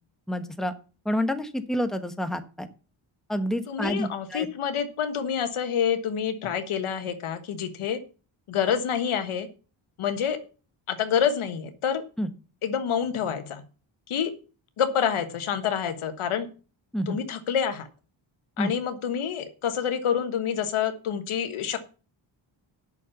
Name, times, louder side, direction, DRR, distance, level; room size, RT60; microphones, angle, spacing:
voice 1, 0.3-0.7 1.0-2.7 3.3-4.5 12.2-12.3 16.9-17.2 18.6-18.7, equal, ahead, 8 dB, 1.2 m, -28 dB
voice 2, 3.7-8.0 8.5-9.5 10.0-10.4 10.9-12.0 12.6-13.6 14.1-14.3 14.8-16.5 17.1-17.9 18.6-21.8, left 8 dB, 80° left, 9 dB, 1.4 m, -27 dB
8.4 x 6.6 x 7.0 m, 0.36 s
cardioid pair, 85°, 49 cm